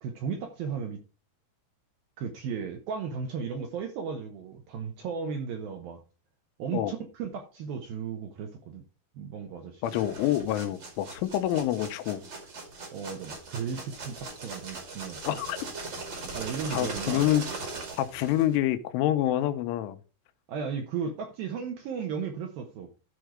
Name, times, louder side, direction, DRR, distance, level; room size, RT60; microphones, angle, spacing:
voice 1, 0.0-1.0 2.2-6.0 6.6-8.8 9.2-10.0 12.9-15.4 16.3-17.3 20.5-22.9, right 6 dB, 70° right, 2.2 m, -35 dB
voice 2, 9.8-12.2 15.3-15.6 16.7-17.5 18.0-20.0, left 12 dB, 85° left, 3.3 m, -27 dB
sound 1, 9.8-18.6, right 3 dB, 40° right, 1.7 m, -40 dB
13.0 x 4.5 x 5.0 m
omnidirectional pair, 5.5 m